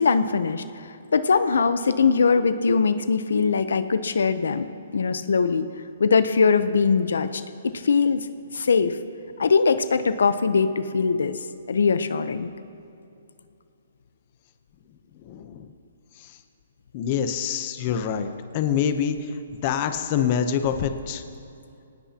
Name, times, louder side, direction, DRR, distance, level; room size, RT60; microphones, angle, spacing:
voice 1, 0.0-5.7 6.0-8.3 8.5-9.0 9.4-11.4 11.7-12.5, left 5 dB, 85° left, 12 dB, 0.8 m, -21 dB
voice 2, 15.3-15.7 16.2-16.3 16.9-19.3 19.6-21.2, left 8 dB, 30° left, 8 dB, 0.8 m, -26 dB
23.0 x 18.5 x 2.9 m, 2.7 s
hypercardioid pair, 165°, 0 cm